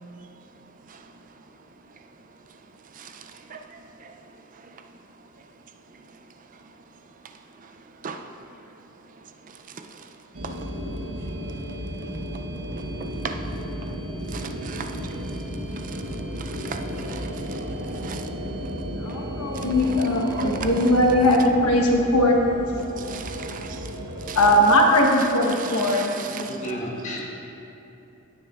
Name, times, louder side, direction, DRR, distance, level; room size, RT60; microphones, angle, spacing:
voice 1, 0.9-1.3 2.8-4.8 5.4-5.5 5.9-6.2 6.5-6.7 7.2-8.5 9.2-10.2 10.4-12.4 12.7-14.0 14.3-19.9 20.3-20.9 22.9-24.4 25.5-26.6, right 5 dB, 35° right, 5 dB, 0.4 m, -41 dB
sound 1, 10.3-24.6, equal, 70° right, 1.0 m, -33 dB
voice 2, 19.0-22.4 24.3-26.5, left 1 dB, 90° left, 0 dB, 1.1 m, -20 dB
voice 3, 26.2-27.2, equal, 35° left, -3 dB, 1.3 m, -33 dB
16.5 x 6.5 x 2.4 m, 3.0 s
head